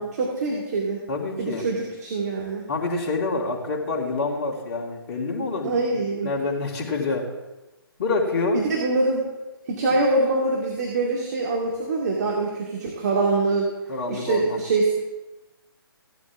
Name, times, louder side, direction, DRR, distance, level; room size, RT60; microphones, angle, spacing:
voice 1, 0.0-1.0 1.4-2.7 5.6-6.3 8.5-9.3 9.7-13.7 14.1-15.0, right 3 dB, 45° right, -2 dB, 2.4 m, -24 dB
voice 2, 1.1-1.6 2.7-7.3 8.0-8.6 13.9-14.6, left 3 dB, 40° left, -2 dB, 3.0 m, -27 dB
16.0 x 12.0 x 3.6 m, 1.1 s
figure-of-eight pair, 140°, 13 cm